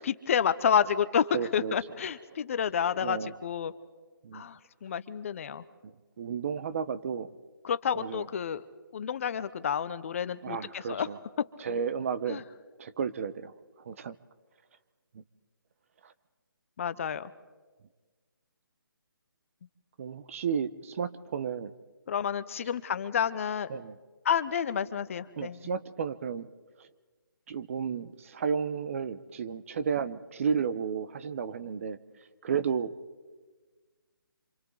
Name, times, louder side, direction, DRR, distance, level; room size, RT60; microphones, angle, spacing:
voice 1, 0.0-3.7 4.3-5.6 7.6-8.6 8.9-11.1 12.3-12.4 16.8-17.3 22.1-23.7 24.2-25.6, left 8 dB, 35° left, 14 dB, 0.8 m, -29 dB
voice 2, 1.3-1.8 3.0-3.3 4.2-4.5 5.8-7.3 7.9-8.3 10.4-11.2 11.6-12.4 12.8-14.2 15.1-15.2 16.0-16.1 20.0-21.7 23.7-24.0 25.4-26.5 26.8-26.9 27.5-32.0 32.4-32.9, right 6 dB, 35° right, 14 dB, 0.8 m, -33 dB
29.0 x 26.5 x 4.0 m, 1.4 s
figure-of-eight pair, 155°, 12 cm